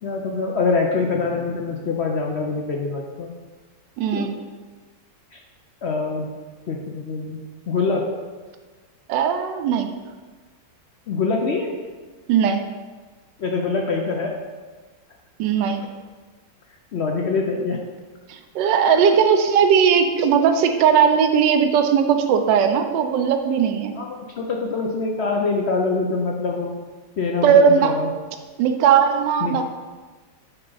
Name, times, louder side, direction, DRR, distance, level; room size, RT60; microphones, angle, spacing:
voice 1, 0.0-3.3 4.1-4.3 5.3-5.4 5.8-6.3 6.7-8.1 11.1-11.7 13.4-14.3 16.9-17.8 24.0-26.7 27.2-28.1 29.4-29.6, left 4 dB, 70° left, 0 dB, 0.6 m, -24 dB
voice 2, 4.0-4.3 9.1-9.9 12.3-12.6 15.4-15.8 18.3-24.0 27.4-27.9 28.6-29.6, right 7 dB, 85° right, 7 dB, 1.3 m, -18 dB
9.0 x 3.8 x 3.9 m, 1.4 s
omnidirectional pair, 1.9 m